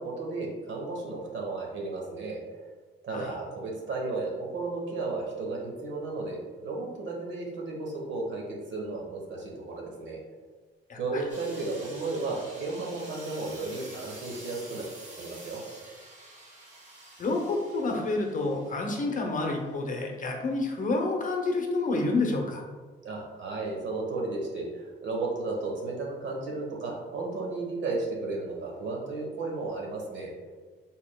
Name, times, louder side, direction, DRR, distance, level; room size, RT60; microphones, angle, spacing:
voice 1, 0.0-2.4 3.0-8.4 8.7-10.2 10.9-14.9 15.2-15.6 23.0-30.3, right 3 dB, 70° right, -1 dB, 1.1 m, -34 dB
voice 2, 10.9-11.2 17.2-22.6, left 2 dB, 40° left, 2 dB, 0.7 m, -29 dB
sound 1, 11.3-19.9, right 2 dB, 40° right, 1.2 m, -48 dB
4.4 x 3.6 x 2.2 m, 1.4 s
cardioid pair, 90°, 20 cm